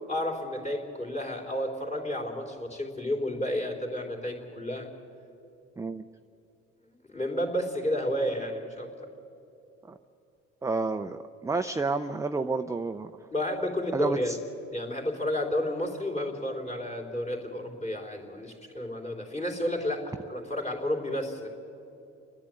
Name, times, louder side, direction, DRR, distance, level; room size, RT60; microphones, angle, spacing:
voice 1, 0.1-4.9 7.1-8.9 13.3-14.3 14.7-21.5, left 1 dB, 20° left, 2 dB, 3.6 m, -31 dB
voice 2, 10.6-13.1 13.9-14.4, right 3 dB, 10° right, 8 dB, 0.5 m, -30 dB
29.0 x 10.5 x 9.0 m, 2.7 s
cardioid pair, 100°, 30 cm